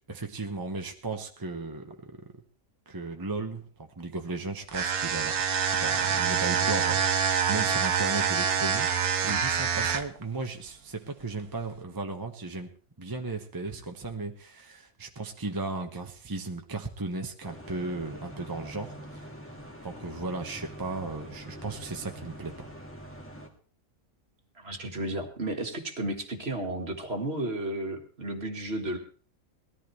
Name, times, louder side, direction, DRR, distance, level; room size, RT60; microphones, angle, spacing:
voice 1, 0.1-2.2 2.9-12.7 13.0-19.6 19.8-22.7, right 3 dB, 15° right, 4 dB, 0.9 m, -36 dB
sound 1, 4.7-10.2, right 7 dB, 80° right, 1.5 m, -26 dB
sound 2, 17.4-23.5, equal, 10° left, 1.9 m, -44 dB
voice 2, 24.6-29.0, right 1 dB, 45° right, 4 dB, 2.0 m, -33 dB
19.5 x 13.5 x 3.3 m, 0.40 s
omnidirectional pair, 1.5 m